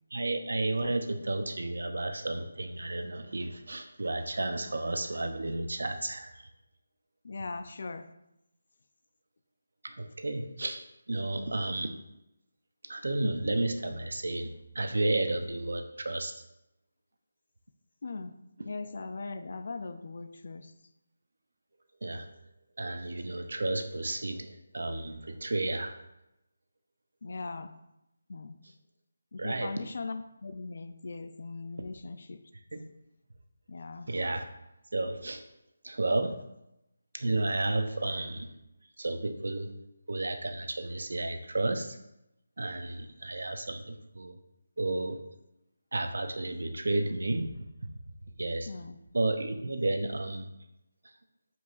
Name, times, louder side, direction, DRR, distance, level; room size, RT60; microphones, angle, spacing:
voice 1, 0.1-6.3 9.8-10.8 11.1-11.9 12.9-16.3 22.0-22.3 22.8-26.0 29.4-29.7 32.7-32.8 34.1-34.4 34.9-35.4 35.8-36.3 37.1-38.5 39.0-39.7 40.1-42.0 42.6-44.3 44.8-45.2 45.9-47.5 48.4-48.7 49.1-50.5, right 2 dB, 75° right, 7 dB, 0.7 m, -32 dB
voice 2, 7.2-8.1 18.0-18.3 18.6-20.7 27.2-27.7 28.3-28.6 29.3-32.4 33.7-34.1 48.7-49.0, left 3 dB, 50° left, 9 dB, 0.5 m, -39 dB
7.9 x 4.8 x 2.6 m, 0.87 s
figure-of-eight pair, 175°, 0 cm